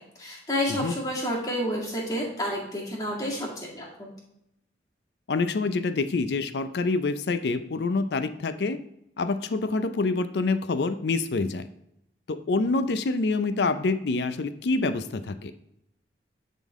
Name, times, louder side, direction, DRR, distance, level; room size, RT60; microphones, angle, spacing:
voice 1, 0.2-4.1, equal, 20° left, -4 dB, 2.0 m, -30 dB
voice 2, 5.3-8.8 9.2-11.7 12.3-15.5, left 3 dB, 70° left, 11 dB, 0.4 m, -26 dB
10.5 x 3.8 x 3.6 m, 0.81 s
head